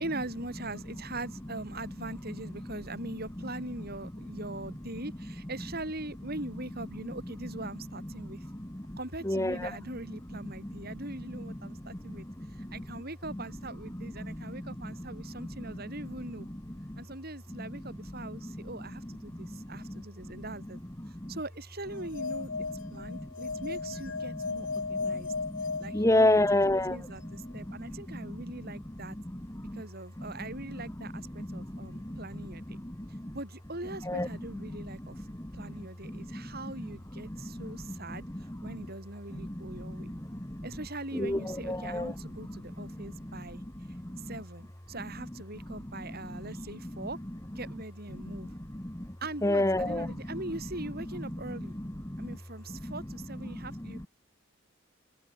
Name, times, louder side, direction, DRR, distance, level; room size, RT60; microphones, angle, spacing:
voice 1, 0.0-8.4 9.0-12.3 12.6-16.5 17.0-20.8 21.3-25.3 25.8-29.2 29.7-32.8 33.3-35.3 35.5-38.2 38.6-40.1 40.6-43.6 44.2-47.2 47.6-48.6 49.2-51.8 52.2-54.1, right 2 dB, 50° right, 7.8 m, -41 dB
voice 2, 8.4-9.0 9.2-9.7 10.6-10.8 11.5-12.8 14.2-15.0 15.4-15.8 16.5-16.6 16.9-17.0 18.4-18.6 19.1-20.3 21.0-21.3 22.9-23.3 24.3-24.4 24.9-28.4 29.3-29.8 30.2-30.3 31.1-33.3 34.0-34.3 35.1-35.7 36.0-36.5 37.3-38.8 39.3-40.7 41.1-42.1 42.4-42.5 42.8-43.5 43.8-44.3 46.0-46.6 48.2-49.1 49.4-50.4 51.3-52.4 52.7-52.9 53.4-54.1, left 1 dB, 15° left, 1.6 m, -33 dB
sound 1, 21.9-26.7, left 4 dB, 70° left, 1.5 m, -36 dB
head